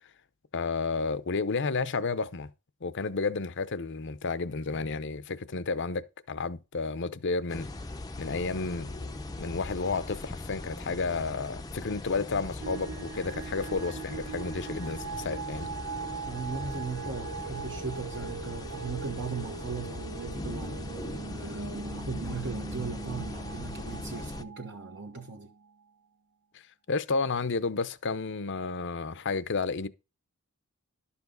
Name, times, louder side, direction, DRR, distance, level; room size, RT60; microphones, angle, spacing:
voice 1, 0.5-2.5 2.8-7.7 8.2-9.1 9.4-15.7 26.9-29.9, left 4 dB, 55° left, 0.7 m, -31 dB
sound 1, 7.5-24.4, left 2 dB, 15° left, 0.7 m, -40 dB
sound 2, 12.6-25.7, right 5 dB, 75° right, 0.6 m, -41 dB
voice 2, 16.3-20.9 21.3-25.5, right 4 dB, 55° right, 1.3 m, -38 dB
11.5 x 7.1 x 4.0 m
head